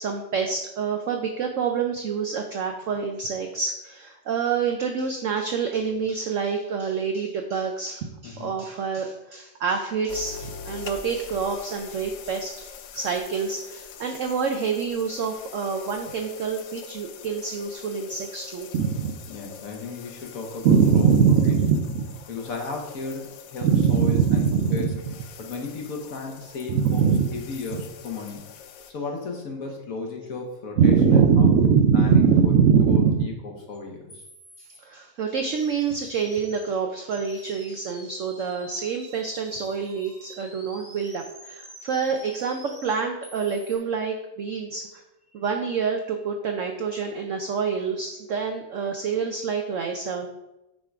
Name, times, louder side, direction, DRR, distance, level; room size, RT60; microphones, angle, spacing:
voice 1, 0.0-19.1 20.6-22.1 23.6-25.1 26.7-27.3 30.8-33.2 34.8-45.0 45.3-50.3, right 6 dB, 80° right, 4 dB, 0.7 m, -24 dB
voice 2, 8.2-8.5 19.3-21.5 22.3-24.9 25.4-28.5 28.9-34.2, left 3 dB, 55° left, 1 dB, 1.3 m, -35 dB
sound 1, 10.1-28.9, left 7 dB, 75° left, 0.8 m, -44 dB
sound 2, 33.7-33.8 34.1-34.8 35.4-36.7 37.1-43.8, equal, 5° left, 1.0 m, -47 dB
6.3 x 3.7 x 4.6 m, 0.94 s
omnidirectional pair, 2.0 m